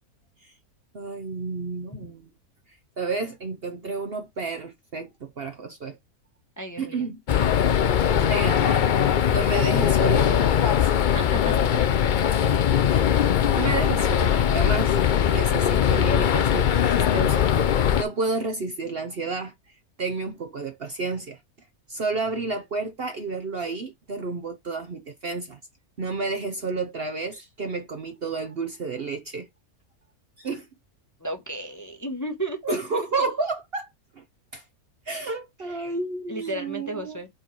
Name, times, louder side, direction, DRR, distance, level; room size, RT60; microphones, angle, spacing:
voice 1, 0.9-2.3 3.0-6.0 6.8-7.2 8.3-8.8 9.3-10.9 12.9-13.1 13.5-15.0 15.3-17.5 17.9-19.5 20.0-21.4 21.9-25.6 26.0-29.5 30.4-30.7 32.6-33.9 34.2-34.3 34.5-34.6 35.1-37.2, right 3 dB, 50° right, 0.9 m, -31 dB
voice 2, 6.6-7.1 11.0-11.5 31.2-32.8 35.7-35.8 36.3-37.3, right 2 dB, 15° left, 0.9 m, -33 dB
sound 1, 7.3-18.0, left 9 dB, 80° left, 0.4 m, -21 dB
5.3 x 4.1 x 4.5 m
omnidirectional pair, 1.6 m